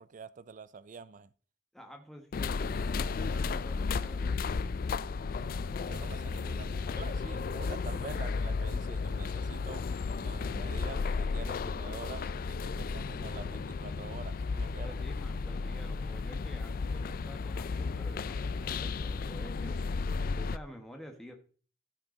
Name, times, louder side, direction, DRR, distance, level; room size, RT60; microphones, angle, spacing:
voice 1, 0.0-1.3 5.1-9.8 10.2-14.9, right 5 dB, 45° right, 0.4 m, -47 dB
voice 2, 1.7-4.4 6.7-7.3 14.8-19.9 20.3-21.4, equal, ahead, 1.3 m, -49 dB
sound 1, 2.3-20.6, left 4 dB, 50° left, 0.4 m, -34 dB
14.5 x 5.8 x 3.9 m
head